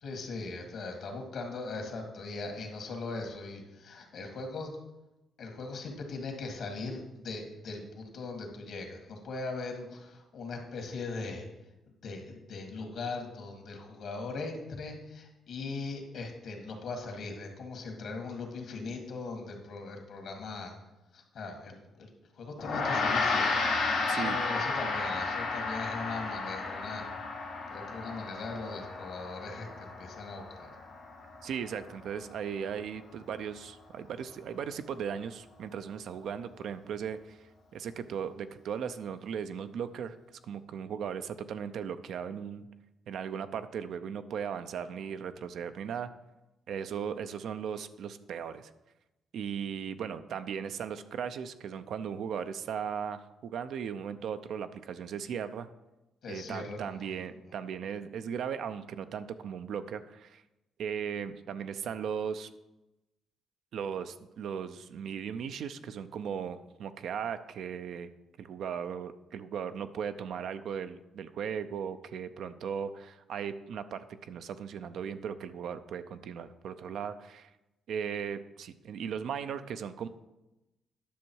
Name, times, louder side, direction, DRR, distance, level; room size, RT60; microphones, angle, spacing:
voice 1, 0.0-4.8 5.4-11.5 12.0-20.7 21.1-23.5 24.0-27.0 27.7-30.7 56.2-57.1, left 3 dB, 65° left, 3 dB, 2.0 m, -40 dB
Gong, 22.6-32.1, left 4 dB, 85° left, 2.0 m, -33 dB
voice 2, 31.4-37.4 37.7-40.1 40.5-42.7 43.1-46.1 46.7-48.7 49.3-55.7 56.3-60.4 60.8-62.5 63.7-68.1 68.4-77.5 77.9-80.1, right 7 dB, 70° right, 10 dB, 0.5 m, -37 dB
10.0 x 6.3 x 4.6 m, 0.98 s
cardioid pair, 90°, 0 cm